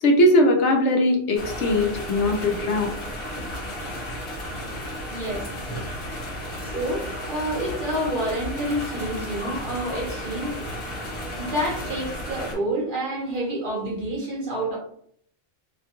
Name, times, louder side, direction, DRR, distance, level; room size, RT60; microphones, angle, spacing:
voice 1, 0.0-2.9, left 1 dB, 80° left, 2 dB, 1.0 m, -20 dB
sound 1, 1.4-12.6, equal, 55° left, 1.2 m, -33 dB
voice 2, 5.1-5.5 6.6-10.7 11.3-14.8, right 1 dB, 50° right, -4 dB, 0.9 m, -28 dB
2.9 x 2.2 x 2.9 m, 0.64 s
omnidirectional pair, 1.2 m